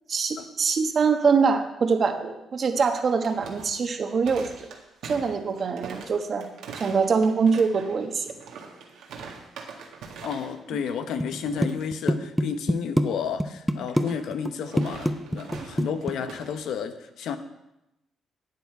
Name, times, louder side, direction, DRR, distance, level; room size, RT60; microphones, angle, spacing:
voice 1, 0.1-4.5 5.0-6.5 6.7-8.3, right 5 dB, 45° right, 6 dB, 1.2 m, -24 dB
sound 1, 2.7-10.6 10.9-11.1 11.5-11.8 13.9-16.5, right 5 dB, 85° right, 1.7 m, -43 dB
voice 2, 10.2-17.4, left 7 dB, 80° left, 9 dB, 0.9 m, -31 dB
sound 2, 11.2-11.4 11.6-13.1 13.4-14.1 14.3-14.5 14.8-16.1, equal, ahead, 0.7 m, -23 dB
11.5 x 8.3 x 4.6 m, 0.92 s
cardioid pair, 90°, 0 cm